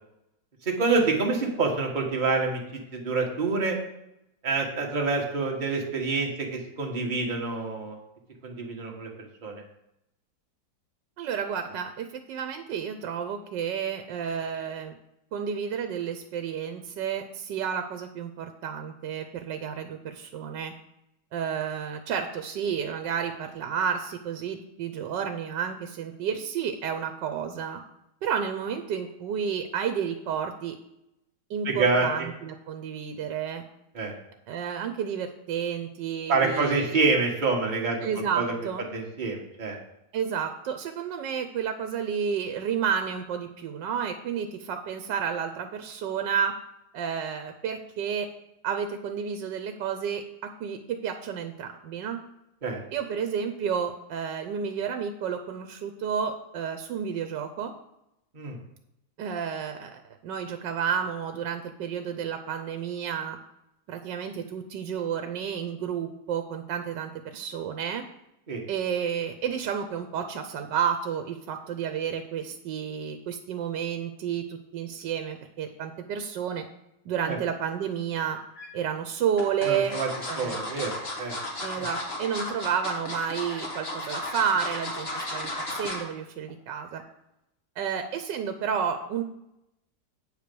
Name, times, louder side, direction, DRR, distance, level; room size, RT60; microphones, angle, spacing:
voice 1, 0.6-2.6 2.9-3.8 4.4-8.0 8.4-9.1 9.4-9.6 31.6-32.1 33.9-34.1 36.3-38.0 38.3-38.5 38.9-39.8 52.6-52.8 58.3-58.6 68.5-68.6 77.3-77.4 79.6-80.1 80.4-81.3 81.7-81.9, right 3 dB, 30° right, 0 dB, 1.5 m, -27 dB
voice 2, 11.2-14.9 15.3-20.7 21.3-27.8 28.2-30.8 31.5-33.6 34.5-37.0 38.0-38.8 40.1-46.5 46.9-48.3 48.6-50.2 50.6-52.2 52.9-57.7 59.2-63.4 63.9-68.0 68.7-76.6 77.1-78.4 78.7-79.9 80.3-80.6 81.6-87.0 87.8-89.2, right 7 dB, 80° right, 7 dB, 1.4 m, -31 dB
sound 1, 78.1-78.7 79.4-86.1 86.5-86.7 87.0-87.1, left 1 dB, 35° left, 1.9 m, -34 dB
8.7 x 4.9 x 6.8 m, 0.83 s
omnidirectional pair, 1.9 m